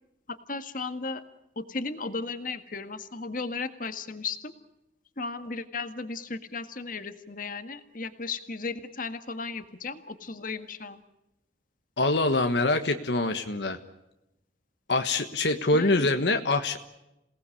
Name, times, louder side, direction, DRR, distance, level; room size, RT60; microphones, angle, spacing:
voice 1, 0.3-1.2 1.6-4.5 5.2-11.0 15.7-16.1, left 4 dB, 50° left, 8 dB, 1.7 m, -35 dB
voice 2, 12.0-13.8 14.9-16.8, left 2 dB, 70° left, 6 dB, 1.4 m, -24 dB
27.5 x 18.5 x 8.5 m, 0.92 s
head